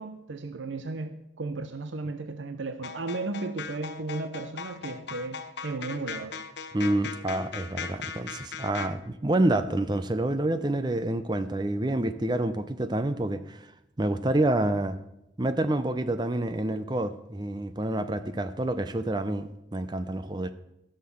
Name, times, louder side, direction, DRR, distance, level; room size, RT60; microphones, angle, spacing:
voice 1, 0.0-6.4, right 3 dB, 80° right, 8 dB, 0.7 m, -35 dB
sound 1, 2.8-8.9, left 5 dB, 60° left, 0.8 m, -38 dB
voice 2, 6.7-13.7 14.0-15.0 15.4-20.5, right 1 dB, 20° right, 11 dB, 0.5 m, -28 dB
15.0 x 6.7 x 7.0 m, 0.86 s
head